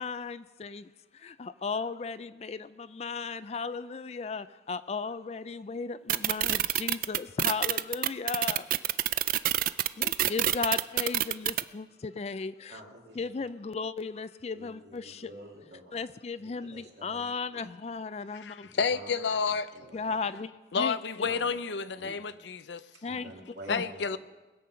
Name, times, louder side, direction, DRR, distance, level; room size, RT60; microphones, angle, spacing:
voice 1, 0.0-8.7 10.0-12.8 13.2-15.3 15.9-18.7 19.9-20.5 20.8-21.3 22.0-22.1 23.0-23.3 23.7-23.8, left 4 dB, 35° left, 0.4 m, -36 dB
sound 1, 6.1-11.6, right 13 dB, 50° right, 0.4 m, -26 dB
voice 2, 12.7-13.5 14.5-16.0 16.4-17.6 18.6-19.1 19.5-20.2 21.2-21.5 22.0-22.4 22.9-24.0, right 1 dB, 75° right, 2.5 m, -49 dB
voice 3, 18.3-19.7 20.7-22.8 23.7-24.2, left 5 dB, 80° left, 0.6 m, -30 dB
21.0 x 7.9 x 5.7 m
head